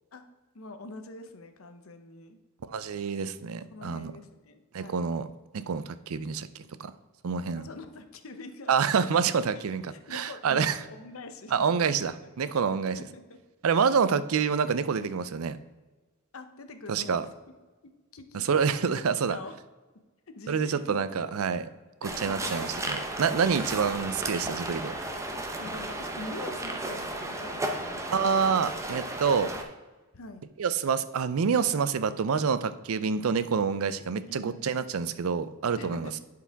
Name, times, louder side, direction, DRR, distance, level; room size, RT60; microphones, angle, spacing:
voice 1, 0.5-2.4 3.7-5.2 7.5-9.1 9.4-12.1 12.7-13.4 14.1-14.3 16.3-17.3 17.8-18.6 19.3-19.6 20.3-21.3 22.0-22.7 23.4-23.8 25.6-28.4 30.1-30.4 34.3-34.8 35.7-36.2, left 2 dB, 70° left, 8 dB, 0.8 m, -44 dB
voice 2, 2.7-4.1 4.7-5.3 5.5-6.9 7.2-7.7 8.7-9.8 10.1-10.8 11.5-12.1 12.4-13.0 13.6-15.6 16.9-17.2 18.3-19.4 20.5-21.6 22.0-24.9 28.1-29.5 30.6-36.1, right 6 dB, 75° right, 13 dB, 0.5 m, -27 dB
sound 1, 22.0-29.6, right 1 dB, 15° right, 0.7 m, -34 dB
11.0 x 4.8 x 3.5 m, 1.2 s
head